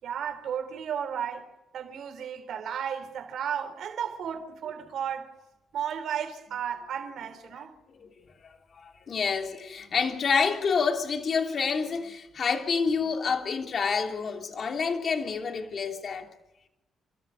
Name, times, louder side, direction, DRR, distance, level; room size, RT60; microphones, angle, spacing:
voice 1, 0.0-1.5 1.7-5.3 5.7-7.8, right 8 dB, 70° right, 3.9 m, -34 dB
voice 2, 8.7-16.3, left 5 dB, 50° left, 3.0 m, -28 dB
29.5 x 13.5 x 8.5 m
cardioid pair, 90°, 0 cm